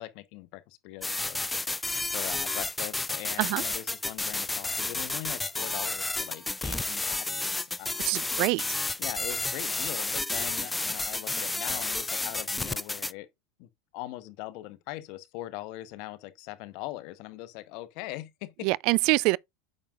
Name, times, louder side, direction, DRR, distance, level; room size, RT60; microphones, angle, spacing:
voice 1, 0.0-8.1 9.0-13.3 13.6-18.7, left 16 dB, 55° left, 1.0 m, -41 dB
sound 1, 1.0-13.1, left 2 dB, 10° left, 0.4 m, -31 dB
voice 2, 8.0-8.6 18.6-19.4, right 24 dB, 55° right, 0.3 m, -25 dB
8.7 x 6.4 x 2.5 m
hypercardioid pair, 85°, 0 cm